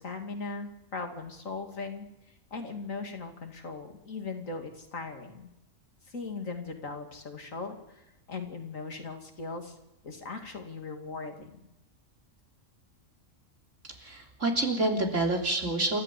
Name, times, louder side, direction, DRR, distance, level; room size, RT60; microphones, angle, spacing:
voice 1, 0.0-2.1 2.5-5.5 6.1-9.8 10.0-11.6, left 4 dB, 80° left, 5 dB, 2.8 m, -39 dB
voice 2, 14.0-16.0, right 2 dB, 70° right, 2 dB, 3.7 m, -27 dB
28.5 x 13.5 x 8.3 m, 0.91 s
omnidirectional pair, 1.4 m